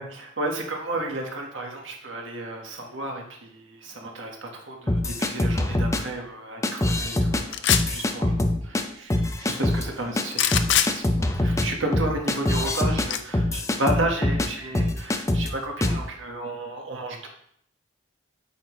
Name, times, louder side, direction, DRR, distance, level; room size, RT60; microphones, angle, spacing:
voice 1, 0.0-7.6 7.8-17.3, right 2 dB, 80° right, 1 dB, 1.6 m, -32 dB
sound 1, 4.9-6.0 6.6-7.4 7.7-8.8 9.1-9.8 10.2-10.3 10.5-14.5 14.7-15.5 15.8-16.0, left 1 dB, 15° left, 0.6 m, -24 dB
sound 2, 7.5-8.0 10.3-10.9 13.1-13.2, left 10 dB, 65° left, 0.5 m, -21 dB
8.6 x 5.7 x 3.2 m, 0.68 s
head